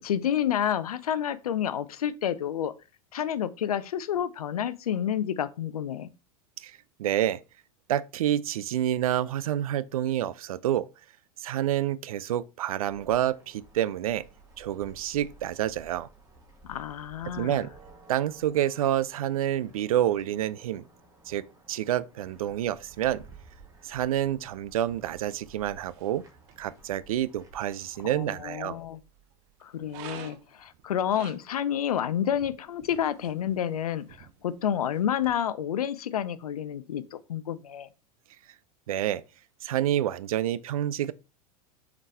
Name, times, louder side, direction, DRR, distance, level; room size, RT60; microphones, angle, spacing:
voice 1, 0.0-2.7 3.1-6.1 16.6-17.6 28.0-29.0 29.6-37.9, left 9 dB, 75° left, 0.6 m, -29 dB
voice 2, 6.6-7.4 7.9-10.9 11.4-14.2 14.6-16.1 17.3-17.7 18.1-20.8 21.3-23.2 23.8-26.2 26.6-28.8 38.9-39.2 39.6-41.1, right 12 dB, 70° right, 0.5 m, -28 dB
sound 1, 12.8-28.4, right 3 dB, 15° right, 2.2 m, -54 dB
sound 2, 22.2-35.3, right 10 dB, 50° right, 0.9 m, -53 dB
7.3 x 3.9 x 3.4 m
figure-of-eight pair, 90°, 19 cm